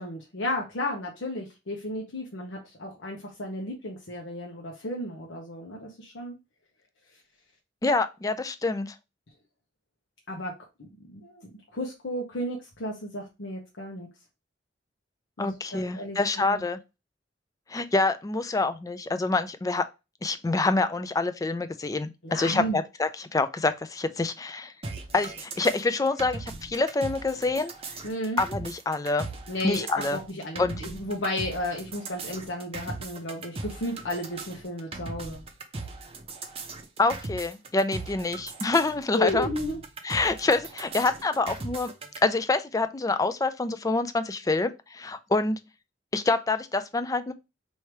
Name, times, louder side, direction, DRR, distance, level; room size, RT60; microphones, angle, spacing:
voice 1, 0.0-6.4 10.3-10.5 10.8-14.1 15.4-16.6 22.2-22.8 28.0-28.4 29.5-35.4 39.1-39.8, left 1 dB, 85° left, 0.9 m, -33 dB
voice 2, 7.8-8.9 15.4-16.8 17.7-19.9 20.2-24.7 25.1-27.7 28.4-29.3 29.6-30.2 30.6-30.8 37.0-39.5 40.0-41.9 42.2-45.6 46.1-47.3, left 3 dB, 20° left, 0.4 m, -26 dB
sound 1, 24.8-42.2, right 3 dB, 30° right, 0.7 m, -39 dB
3.2 x 2.7 x 4.5 m
head